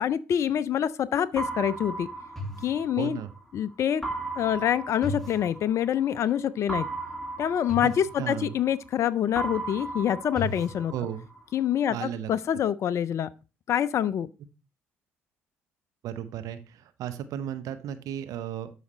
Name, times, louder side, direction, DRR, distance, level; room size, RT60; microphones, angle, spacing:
voice 1, 0.0-2.1 2.6-3.2 3.5-4.0 4.4-6.9 7.4-10.9 11.5-13.3 13.7-14.3, left 10 dB, 45° left, 0.4 m, -26 dB
sound 1, 1.4-3.4 4.0-6.1 6.7-9.0 9.3-11.4, right 2 dB, 5° left, 2.3 m, -35 dB
voice 2, 3.0-3.3 7.8-7.9 8.2-8.6 10.9-11.3 11.9-12.3 16.0-18.7, right 10 dB, 55° right, 0.8 m, -34 dB
12.0 x 4.9 x 3.2 m
figure-of-eight pair, 50°, 7 cm